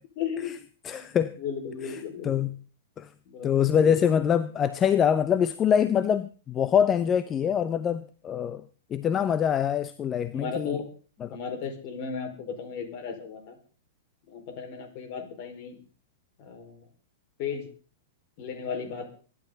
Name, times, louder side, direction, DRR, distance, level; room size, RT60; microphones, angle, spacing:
voice 1, 0.2-0.6 0.9-2.5 3.3-4.0 10.3-10.9 11.3-13.5 14.3-15.8 16.4-16.8 17.4-17.7 18.4-19.1, left 6 dB, 50° left, 6 dB, 5.2 m, -35 dB
voice 2, 0.8-1.4 1.8-2.0 2.2-2.5 3.0-3.1 3.4-8.6 8.9-10.8 11.2-11.4, left 8 dB, 25° left, 14 dB, 0.8 m, -24 dB
24.0 x 11.0 x 4.1 m, 0.38 s
hypercardioid pair, 105°, 0 cm